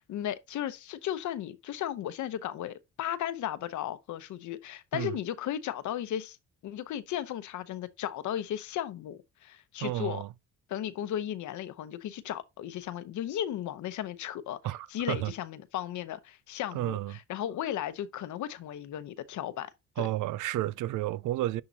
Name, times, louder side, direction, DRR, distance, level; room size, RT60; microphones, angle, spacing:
voice 1, 0.0-6.4 6.6-10.2 10.7-14.6 14.9-19.7 20.0-20.1, left 11 dB, 75° left, 0.9 m, -35 dB
voice 2, 9.8-10.3 14.6-15.3 16.7-17.2 20.0-21.6, right 15 dB, 85° right, 0.5 m, -31 dB
10.5 x 3.8 x 2.8 m
cardioid pair, 90°, 30 cm